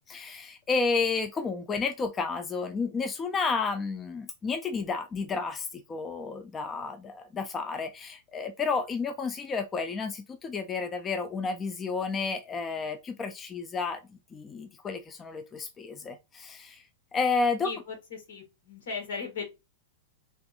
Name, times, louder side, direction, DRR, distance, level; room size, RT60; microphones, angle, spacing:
voice 1, 0.0-14.0 14.3-16.8 17.1-17.7, left 4 dB, 20° left, 0.3 m, -31 dB
voice 2, 17.6-19.4, left 5 dB, 75° left, 1.8 m, -37 dB
3.4 x 2.6 x 2.4 m
hypercardioid pair, 135°, 0 cm